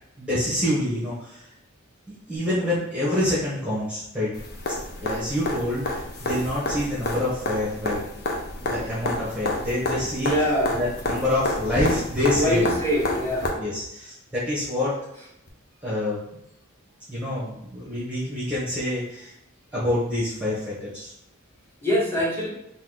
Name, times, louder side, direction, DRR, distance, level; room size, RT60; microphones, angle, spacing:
voice 1, 0.2-1.5 2.1-4.3 5.0-8.0 8.7-12.7 13.6-15.0 15.8-16.2 17.1-19.3 19.7-21.1, left 1 dB, 5° right, -8 dB, 1.0 m, -27 dB
sound 1, 4.3-13.5 15.5-15.6, left 2 dB, 50° left, 0.7 m, -30 dB
voice 2, 10.2-10.8 12.3-13.5 21.8-22.5, equal, 10° left, -5 dB, 1.4 m, -23 dB
3.8 x 2.8 x 3.8 m, 0.84 s
head